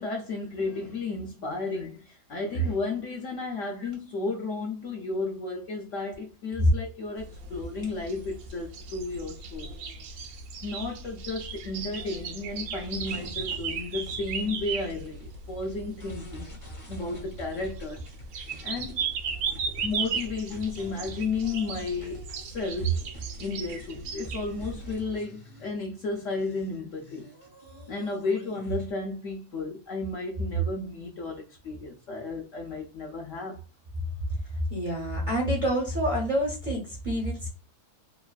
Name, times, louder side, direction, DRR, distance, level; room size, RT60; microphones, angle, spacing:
voice 1, 0.0-9.8 10.6-16.6 16.9-18.0 18.6-19.0 19.8-23.0 23.4-27.2 27.9-33.6, left 2 dB, 65° left, 0.8 m, -33 dB
sound 1, 7.2-24.9, right 5 dB, 70° right, 1.0 m, -36 dB
sound 2, 12.9-25.7 26.1-28.9, right 2 dB, 20° left, 0.5 m, -46 dB
voice 2, 34.7-37.5, equal, 45° right, 0.6 m, -27 dB
3.0 x 2.4 x 2.3 m
omnidirectional pair, 1.7 m